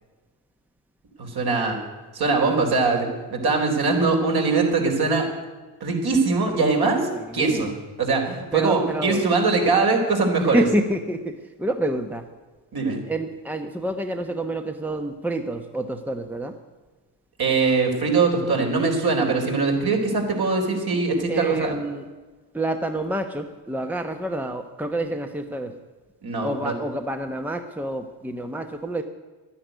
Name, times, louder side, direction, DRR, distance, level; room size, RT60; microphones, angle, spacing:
voice 1, 1.2-1.8 2.1-5.3 5.8-7.7 8.0-10.6 12.7-13.0 17.4-21.8 26.2-26.7, right 4 dB, 50° right, 1 dB, 4.3 m, -22 dB
voice 2, 7.1-7.7 8.5-9.3 10.4-12.2 13.1-16.5 21.3-22.0 22.5-25.7 26.4-29.0, right 1 dB, 5° right, 6 dB, 1.0 m, -28 dB
11.5 x 10.0 x 9.3 m, 1.3 s
supercardioid pair, 70°, 48 cm